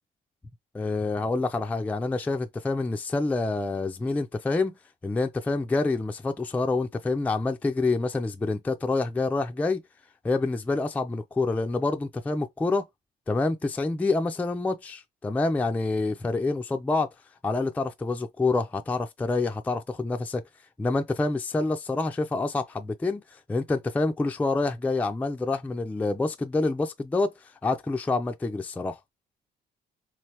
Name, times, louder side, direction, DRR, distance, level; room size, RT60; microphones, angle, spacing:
voice 1, 0.7-4.8 5.0-9.8 10.2-12.8 13.3-17.1 17.4-20.4 20.8-23.2 23.5-27.3 27.6-29.0, left 3 dB, 10° left, 0.3 m, -27 dB
3.8 x 3.2 x 2.8 m
cardioid pair, 110°, 17 cm